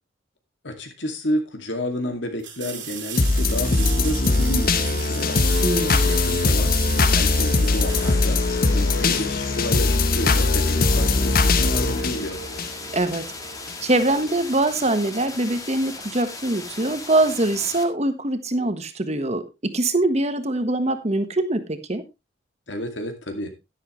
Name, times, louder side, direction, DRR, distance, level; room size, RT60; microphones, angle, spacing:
voice 1, 0.6-5.4 6.1-8.4 8.7-12.4 22.7-23.5, left 1 dB, 65° left, 5 dB, 2.3 m, -30 dB
sound 1, 1.0-1.1 2.4-9.0 11.9-12.0, right 8 dB, 70° right, 2.9 m, -36 dB
sound 2, 3.2-13.2 13.7-13.8, left 3 dB, 50° left, 1.0 m, -21 dB
voice 2, 5.6-6.1 12.9-13.2 13.8-22.0, right 2 dB, 35° right, 10 dB, 1.3 m, -23 dB
sound 3, 7.9-17.8, left 3 dB, 20° left, 1.8 m, -37 dB
11.0 x 11.0 x 3.2 m, 0.25 s
head